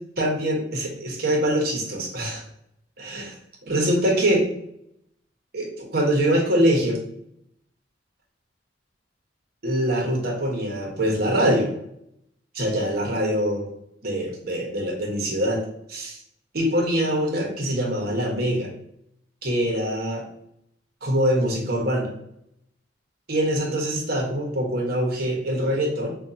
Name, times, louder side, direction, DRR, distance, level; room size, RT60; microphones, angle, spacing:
voice 1, 0.2-2.4 3.0-3.3 3.6-4.4 5.5-7.0 9.6-11.7 12.5-13.7 14.0-15.6 15.9-16.2 16.5-18.7 19.4-20.2 21.0-22.1 23.3-26.1, equal, 60° right, 0 dB, 1.1 m, -24 dB
5.1 x 2.3 x 2.7 m, 0.75 s
head